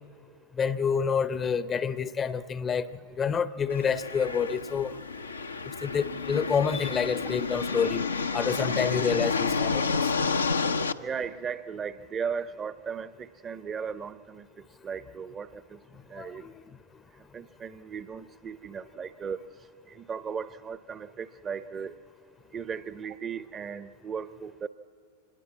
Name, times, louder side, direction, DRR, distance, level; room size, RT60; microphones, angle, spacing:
voice 1, 0.6-2.9 3.2-4.9 5.8-8.1 8.3-10.0 16.2-16.5, left 6 dB, 25° left, 0.7 m, -28 dB
sound 1, 3.7-10.9, left 4 dB, 80° left, 0.6 m, -30 dB
voice 2, 11.0-14.5 14.8-15.8 16.1-16.4 17.3-19.4 20.0-21.9 22.5-24.7, right 6 dB, 25° right, 0.7 m, -36 dB
25.0 x 20.0 x 8.6 m
figure-of-eight pair, 90°, 0 cm